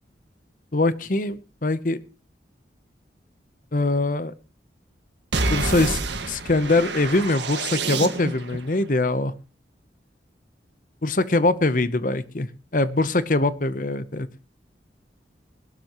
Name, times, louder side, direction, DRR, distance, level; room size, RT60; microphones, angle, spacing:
voice 1, 0.7-2.0 3.7-4.3 5.5-6.0 6.3-9.3 11.0-12.5 12.7-14.3, left 2 dB, 45° left, 14 dB, 0.8 m, -22 dB
sound 1, 5.3-8.6, right 3 dB, 85° right, 1.8 m, -27 dB
21.5 x 12.0 x 3.0 m, 0.32 s
head